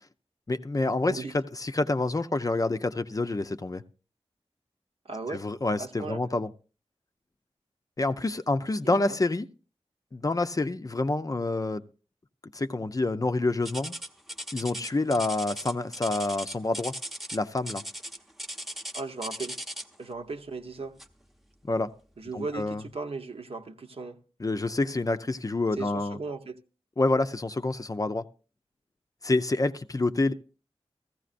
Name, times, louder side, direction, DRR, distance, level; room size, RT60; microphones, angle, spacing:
voice 1, 0.5-3.8 5.3-6.5 8.0-9.5 10.1-11.8 12.5-13.9 14.5-16.9 17.3-17.8 21.6-21.9 22.3-22.8 24.4-26.2 27.0-28.2 29.2-30.3, left 2 dB, 30° left, 0.5 m, -27 dB
voice 2, 5.0-5.4 5.8-6.2 8.8-9.0 18.9-19.6 20.0-21.0 22.2-24.2 25.8-26.6, right 3 dB, 65° right, 0.8 m, -37 dB
sound 1, 13.6-20.0 21.0-21.2 21.8-21.9 22.6-22.7, equal, ahead, 0.8 m, -38 dB
15.0 x 14.5 x 2.5 m
wide cardioid pair, 75°, 11 cm